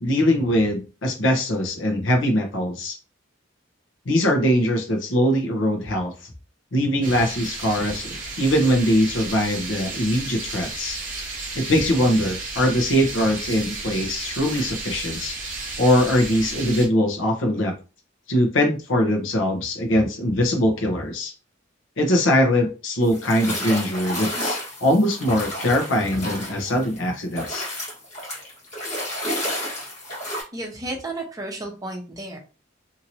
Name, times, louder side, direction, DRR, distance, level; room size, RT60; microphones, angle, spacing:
voice 1, 0.0-3.0 4.1-6.1 6.7-11.0 11.5-15.3 15.8-17.7 18.3-21.3 22.0-27.7, equal, 85° left, 2 dB, 0.8 m, -22 dB
sound 1, 7.0-16.9, right 3 dB, 45° right, 1.0 m, -33 dB
sound 2, 23.0-27.0 27.3-30.4, equal, 35° left, 1.4 m, -31 dB
voice 2, 30.5-32.4, right 2 dB, 20° right, 1 dB, 0.8 m, -32 dB
2.9 x 2.8 x 2.7 m, 0.33 s
head